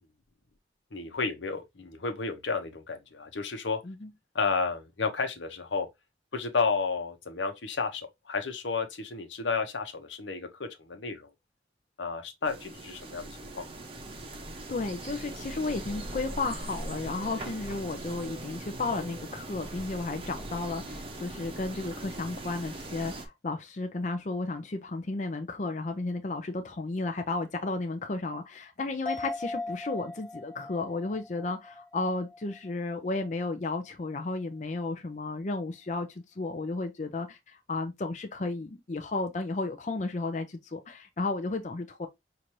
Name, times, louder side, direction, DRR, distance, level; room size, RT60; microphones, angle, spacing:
voice 1, 0.9-3.8 4.3-5.9 6.3-11.3 12.0-13.3 13.5-13.8, left 4 dB, 85° left, 0.9 m, -32 dB
sound 1, 12.5-23.3, right 2 dB, 30° right, 0.7 m, -40 dB
voice 2, 14.7-36.1 36.4-42.1, left 3 dB, 40° left, 0.5 m, -33 dB
sound 2, 29.1-32.8 33.1-33.2, left 2 dB, 5° left, 0.7 m, -39 dB
5.7 x 2.6 x 3.1 m
head